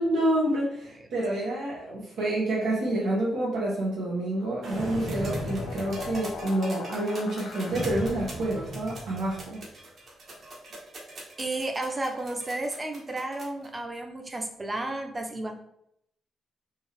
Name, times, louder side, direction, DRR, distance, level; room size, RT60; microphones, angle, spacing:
voice 1, 0.0-9.6, right 1 dB, 90° right, -6 dB, 1.3 m, -28 dB
sound 1, 4.0-8.6, left 6 dB, 75° left, 0.4 m, -42 dB
sound 2, 4.6-6.5 7.6-9.4, right 1 dB, 75° right, 1.5 m, -36 dB
sound 3, 5.0-13.7 14.9-15.0, right 1 dB, 55° right, 1.4 m, -44 dB
voice 2, 11.4-15.5, right 2 dB, 20° right, 4 dB, 0.7 m, -32 dB
4.5 x 2.9 x 3.4 m, 0.74 s
cardioid pair, 110°, 0 cm